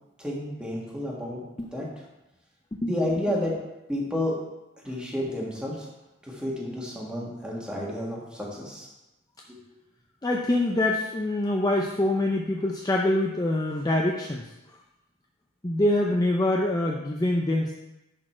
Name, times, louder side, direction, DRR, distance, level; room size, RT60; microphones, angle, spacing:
voice 1, 0.2-1.4 1.7-1.8 2.8-3.5 3.9-4.3 4.8-5.9 6.2-8.9, left 1 dB, 5° right, -4 dB, 1.7 m, -30 dB
voice 2, 10.2-14.4 15.6-17.7, left 1 dB, 20° left, 0 dB, 0.5 m, -25 dB
11.0 x 4.2 x 4.4 m, 0.99 s
head